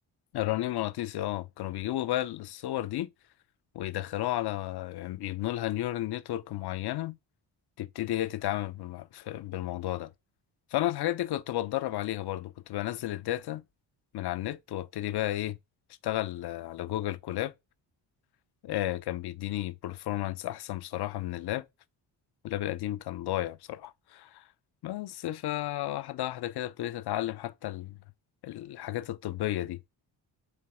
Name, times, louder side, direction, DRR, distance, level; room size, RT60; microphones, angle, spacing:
voice 1, 0.3-3.1 3.7-7.2 7.8-10.1 10.7-13.6 14.1-15.6 16.0-17.5 18.6-21.7 22.4-24.4 24.8-28.0 28.4-29.8, left 14 dB, 60° left, 0.5 m, -33 dB
4.5 x 3.3 x 3.5 m
cardioid pair, 85°, 45 cm